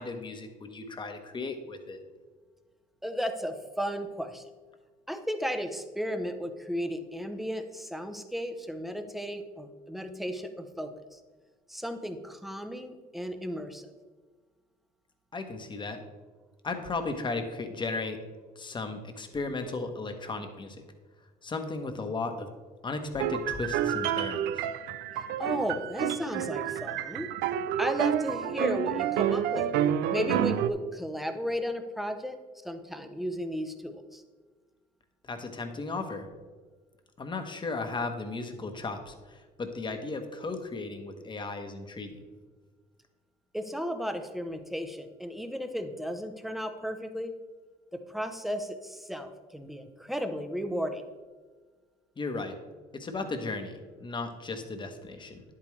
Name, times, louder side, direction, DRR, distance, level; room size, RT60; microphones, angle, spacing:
voice 1, 0.0-2.0 15.3-16.0 16.6-18.2 18.5-20.8 21.4-22.5 22.8-24.7 35.2-36.3 37.2-42.2 52.2-52.6 52.9-55.4, left 3 dB, 30° left, 6 dB, 1.2 m, -35 dB
voice 2, 3.0-4.4 5.1-11.2 11.7-13.9 25.1-27.3 27.8-29.7 30.1-32.4 32.6-34.2 43.5-47.3 47.9-51.0, equal, ahead, 6 dB, 0.8 m, -34 dB
sound 1, 23.2-30.7, right 9 dB, 85° right, 0.5 m, -29 dB
10.0 x 8.6 x 3.3 m, 1.4 s
cardioid pair, 110°, 17 cm